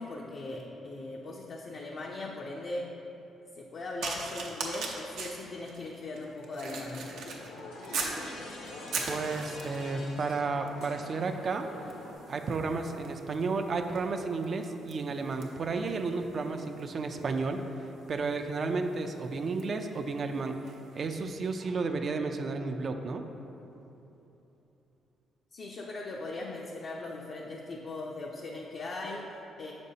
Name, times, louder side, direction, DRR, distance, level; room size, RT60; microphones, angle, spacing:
voice 1, 0.0-2.9 3.6-7.1 25.5-29.7, left 2 dB, 55° left, -2 dB, 0.5 m, -39 dB
sound 1, 4.0-8.2 8.7-9.9 10.7-10.9 11.2-20.9 21.6-21.7, right 4 dB, 80° right, 0.7 m, -41 dB
sound 2, 6.6-12.1, left 1 dB, 90° left, 0.9 m, -44 dB
voice 2, 9.1-11.7 12.3-20.6 20.9-23.3, right 4 dB, 50° right, 5 dB, 0.4 m, -32 dB
6.7 x 5.2 x 2.8 m, 3.0 s
cardioid pair, 90°, 0 cm